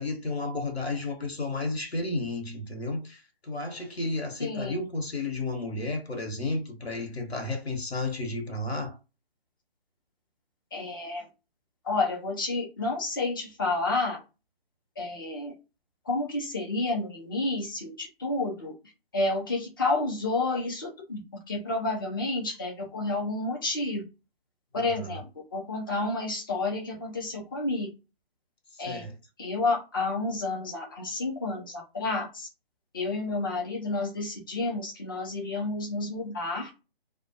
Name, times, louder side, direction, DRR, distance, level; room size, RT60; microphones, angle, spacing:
voice 1, 0.0-9.0 24.7-25.2 28.7-29.2, left 2 dB, 80° left, 1.2 m, -32 dB
voice 2, 4.4-4.8 10.7-11.3 11.8-14.2 15.0-15.5 16.1-18.7 19.1-21.2 21.5-24.0 24.7-25.2 25.5-27.9 28.8-29.0 29.4-32.5 32.9-36.7, left 2 dB, 20° left, 0.6 m, -30 dB
2.2 x 2.2 x 2.7 m
figure-of-eight pair, 145°, 31 cm